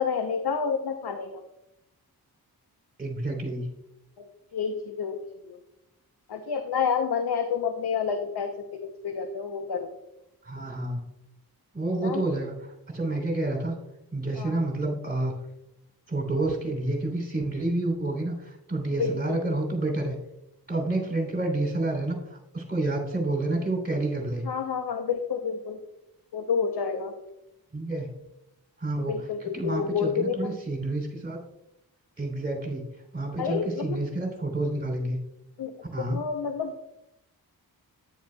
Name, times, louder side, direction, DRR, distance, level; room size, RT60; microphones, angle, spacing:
voice 1, 0.0-1.4 4.2-4.3 4.5-5.2 5.5-5.6 6.3-9.9 12.0-12.2 14.3-14.6 19.0-19.6 24.4-25.8 26.3-27.1 29.1-30.5 33.4-34.0 35.6-36.8, left 6 dB, 90° left, 6 dB, 0.8 m, -29 dB
voice 2, 3.0-3.7 10.4-11.0 11.7-13.8 14.1-15.4 16.1-20.2 20.7-24.4 27.7-28.1 28.8-31.4 32.2-32.8 33.1-35.2 35.9-36.2, right 2 dB, 25° right, 0 dB, 3.1 m, -29 dB
10.5 x 9.4 x 2.2 m, 0.85 s
wide cardioid pair, 105°, 38 cm